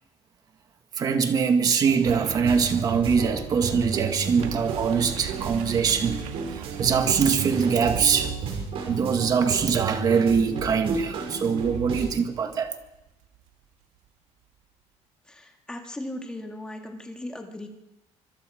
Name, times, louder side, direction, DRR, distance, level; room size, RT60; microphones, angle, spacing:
voice 1, 1.0-6.2 6.5-8.3 8.9-12.8, right 6 dB, 30° right, 1.8 m, -23 dB
sound 1, 2.0-13.5 14.0-14.1, right 10 dB, 75° right, 1.9 m, -42 dB
sound 2, 2.4-12.0, right 5 dB, 50° right, 5.9 m, -32 dB
voice 2, 15.3-17.7, left 1 dB, 5° left, 2.2 m, -37 dB
25.5 x 22.0 x 5.1 m
cardioid pair, 180°, 12 cm